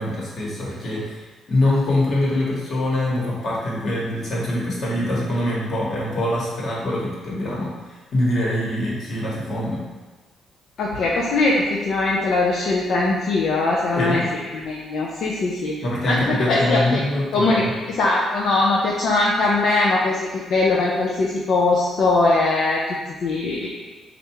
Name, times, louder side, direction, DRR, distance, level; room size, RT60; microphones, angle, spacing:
voice 1, 0.0-9.8 13.9-14.3 15.8-17.7, left 1 dB, 55° left, -5 dB, 1.3 m, -24 dB
voice 2, 10.8-14.2 14.6-15.8 16.1-17.0 17.3-23.7, left 2 dB, 70° left, -4 dB, 0.5 m, -21 dB
3.3 x 2.5 x 4.5 m, 1.2 s
cardioid pair, 90°, 0 cm